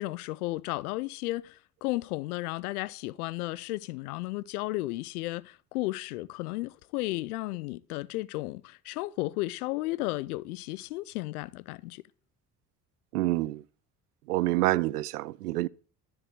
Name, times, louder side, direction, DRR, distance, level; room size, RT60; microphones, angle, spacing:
voice 1, 0.0-12.0, left 19 dB, 75° left, 0.7 m, -34 dB
voice 2, 13.1-13.6 14.3-15.7, right 18 dB, 80° right, 0.6 m, -27 dB
13.0 x 7.4 x 7.6 m
figure-of-eight pair, 50°, 45 cm